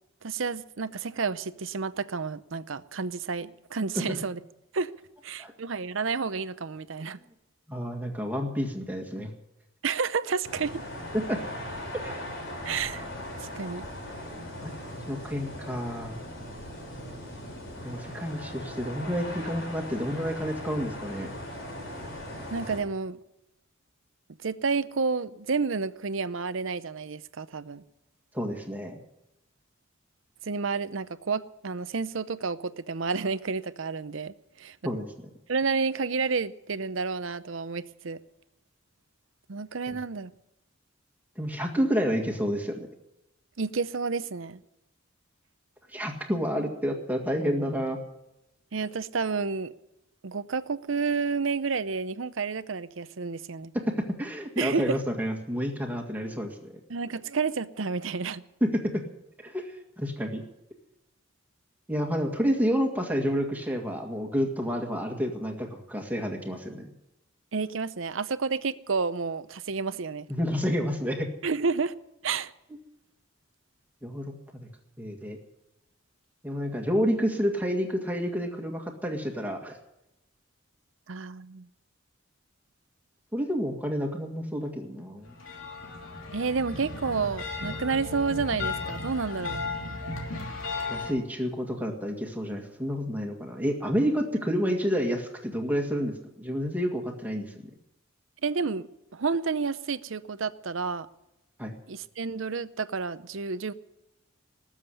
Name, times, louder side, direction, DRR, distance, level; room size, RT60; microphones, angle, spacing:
voice 1, 0.2-4.4 4.7-4.9 5.2-7.2 9.8-10.8 12.6-13.1 13.4-13.9 22.5-23.2 24.4-27.8 30.4-34.8 35.5-38.2 39.5-40.3 43.6-44.6 46.3-46.7 48.7-49.7 50.2-53.7 54.6-54.8 56.9-58.4 67.5-70.3 71.4-71.9 72.2-72.5 81.1-81.7 86.3-89.6 98.4-101.1 101.9-103.7, right 4 dB, 70° right, 0.7 m, -30 dB
voice 2, 7.7-9.3 11.1-11.4 11.9-12.1 14.6-14.7 15.1-16.2 17.8-21.3 28.3-29.0 34.8-35.3 39.9-40.0 41.4-42.9 45.9-48.0 53.9-54.0 54.2-56.8 58.6-59.0 59.4-60.4 61.9-66.9 70.3-71.3 74.0-74.7 75.0-75.4 76.4-79.8 83.3-85.3 90.9-97.5 101.6-101.7, equal, 10° right, 1.9 m, -29 dB
sound 1, 10.4-22.8, left 1 dB, 65° left, 4.3 m, -39 dB
sound 2, 85.2-91.1, left 3 dB, 80° left, 3.0 m, -35 dB
19.5 x 7.4 x 9.8 m
head